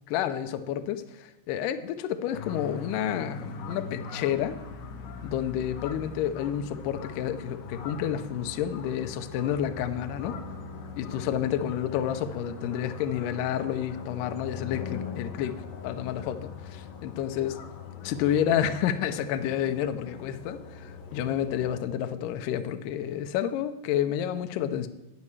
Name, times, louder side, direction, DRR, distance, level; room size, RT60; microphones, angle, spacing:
voice 1, 0.1-1.0 1.5-4.6 5.2-10.4 11.0-15.6 15.8-17.6 18.0-24.9, left 10 dB, 85° left, 9 dB, 1.9 m, -30 dB
sound 1, 2.3-21.9, left 5 dB, 70° left, 2.2 m, -41 dB
16.5 x 9.6 x 3.2 m, 1.0 s
omnidirectional pair, 4.7 m